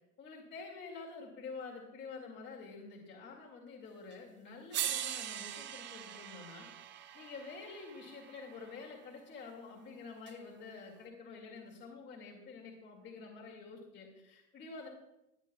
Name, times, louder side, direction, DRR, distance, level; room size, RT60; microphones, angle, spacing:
voice 1, 0.2-6.7 7.1-14.9, left 4 dB, 25° left, -2 dB, 2.1 m, -48 dB
sound 1, 4.1-4.2 4.7-8.9 10.3-10.4, right 11 dB, 25° right, 0.6 m, -41 dB
17.5 x 9.5 x 2.3 m, 0.89 s
hypercardioid pair, 100°, 43 cm